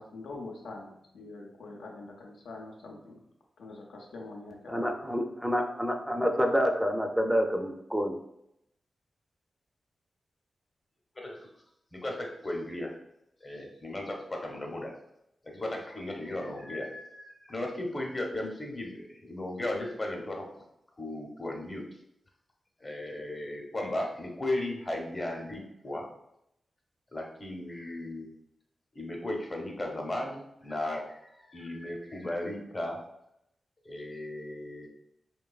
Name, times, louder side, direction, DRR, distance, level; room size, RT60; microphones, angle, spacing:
voice 1, 0.0-3.2 3.6-5.2, left 2 dB, 85° left, 0 dB, 0.5 m, -44 dB
voice 2, 4.7-8.2, equal, 5° right, 3 dB, 0.4 m, -28 dB
voice 3, 11.9-12.9 13.4-14.9 15.4-20.4 21.0-21.8 22.8-26.1 27.1-28.3 28.9-33.0 33.8-34.9, left 1 dB, 35° left, 1 dB, 0.7 m, -36 dB
2.9 x 2.2 x 2.3 m, 0.79 s
cardioid pair, 45°, 0 cm